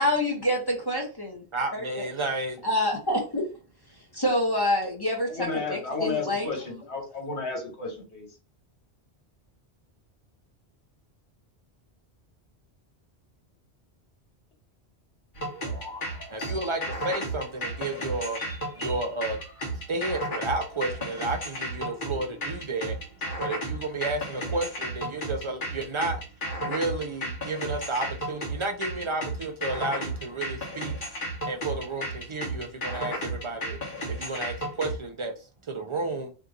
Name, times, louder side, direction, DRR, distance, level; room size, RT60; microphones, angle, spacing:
voice 1, 0.0-1.4 1.7-2.1 2.6-3.4 4.1-6.5, left 1 dB, 25° left, 0.6 m, -27 dB
voice 2, 1.5-2.6 16.3-18.4 18.8-19.4 19.9-23.0 23.4-26.2 26.6-30.9 31.5-33.8 34.2-35.3 35.7-36.3, right 2 dB, 50° right, 0.4 m, -31 dB
voice 3, 5.3-8.3, left 4 dB, 80° left, 1.3 m, -32 dB
sound 1, 15.4-35.0, right 1 dB, 55° left, 0.9 m, -33 dB
2.8 x 2.4 x 3.7 m
omnidirectional pair, 1.1 m